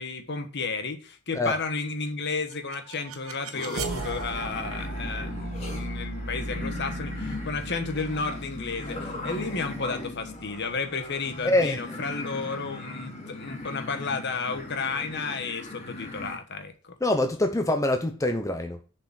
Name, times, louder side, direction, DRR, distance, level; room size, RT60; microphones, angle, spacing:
voice 1, 0.0-16.9, left 4 dB, 55° left, 1.3 m, -32 dB
sound 1, 2.3-11.2, right 1 dB, 75° right, 1.3 m, -37 dB
sound 2, 3.5-16.4, left 1 dB, 30° left, 2.5 m, -39 dB
voice 2, 11.4-11.8 17.0-18.8, left 1 dB, 15° left, 0.7 m, -24 dB
7.1 x 5.0 x 6.3 m
head